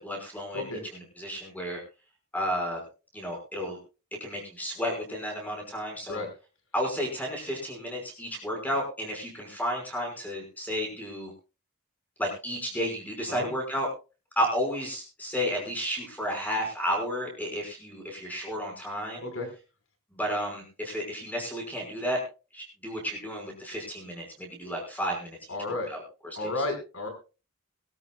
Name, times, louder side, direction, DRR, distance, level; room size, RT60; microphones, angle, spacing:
voice 1, 0.0-0.7 1.2-1.8 2.3-2.8 3.1-3.8 4.2-6.2 6.7-11.3 12.2-13.9 14.4-19.2 20.1-22.2 22.5-25.4 25.7-26.0 26.4-26.5, equal, 10° left, 1 dB, 5.7 m, -32 dB
voice 2, 19.2-19.5 25.5-25.9 26.4-27.1, left 2 dB, 70° left, 5 dB, 5.3 m, -32 dB
23.0 x 13.0 x 2.4 m, 0.32 s
head